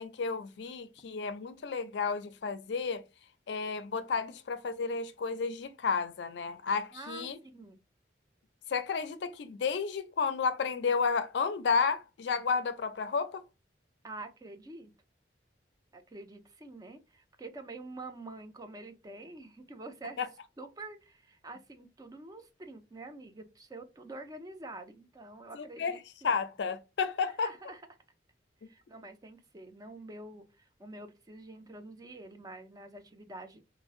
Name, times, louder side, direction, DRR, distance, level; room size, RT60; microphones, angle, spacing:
voice 1, 0.0-3.0 3.5-7.4 8.7-13.4 20.2-20.3 25.5-25.9 26.2-27.5, left 5 dB, 70° left, 0.4 m, -32 dB
voice 2, 6.9-7.8 14.0-14.9 15.9-20.2 20.6-26.4 27.4-27.8 28.6-33.6, right 2 dB, 20° right, 0.4 m, -47 dB
3.6 x 2.1 x 2.4 m
head